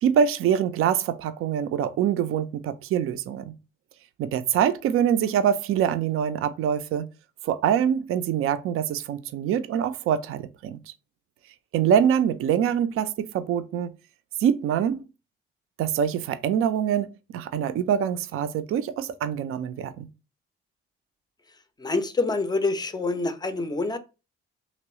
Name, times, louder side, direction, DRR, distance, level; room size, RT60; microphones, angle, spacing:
voice 1, 0.0-3.5 4.2-7.1 7.4-10.8 11.7-13.9 14.4-15.0 15.8-20.1, right 9 dB, 45° right, 0.4 m, -24 dB
voice 2, 21.8-24.0, left 3 dB, 15° left, 0.5 m, -26 dB
2.9 x 2.9 x 3.0 m
figure-of-eight pair, 40°, 30 cm